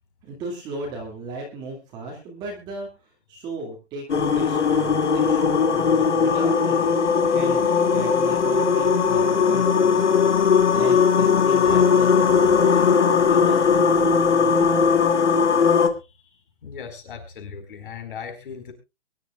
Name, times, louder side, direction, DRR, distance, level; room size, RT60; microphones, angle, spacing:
voice 1, 0.2-2.9 3.3-4.0 4.3-6.9 7.3-13.7 14.0-15.0, right 2 dB, 10° right, 0 dB, 2.2 m, -36 dB
sound 1, 4.1-15.9, left 6 dB, 85° left, 2.5 m, -19 dB
voice 2, 16.0-18.7, left 6 dB, 50° left, 6 dB, 4.6 m, -38 dB
23.5 x 11.5 x 2.4 m, 0.27 s
hypercardioid pair, 165°, 35 cm